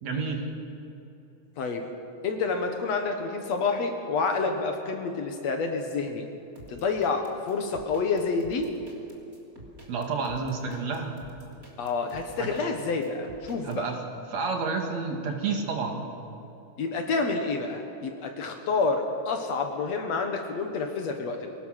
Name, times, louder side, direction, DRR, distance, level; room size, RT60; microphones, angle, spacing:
voice 1, 0.0-0.5 9.9-11.1 12.4-12.5 13.6-14.0 14.3-16.0, right 4 dB, 60° right, 2 dB, 3.0 m, -30 dB
voice 2, 1.6-1.9 2.2-6.3 6.7-8.7 11.8-13.9 16.8-21.5, left 4 dB, 60° left, 4 dB, 2.3 m, -28 dB
sound 1, 6.5-13.8, right 1 dB, 25° right, 3.3 m, -49 dB
23.0 x 18.0 x 6.5 m, 2.9 s
omnidirectional pair, 3.6 m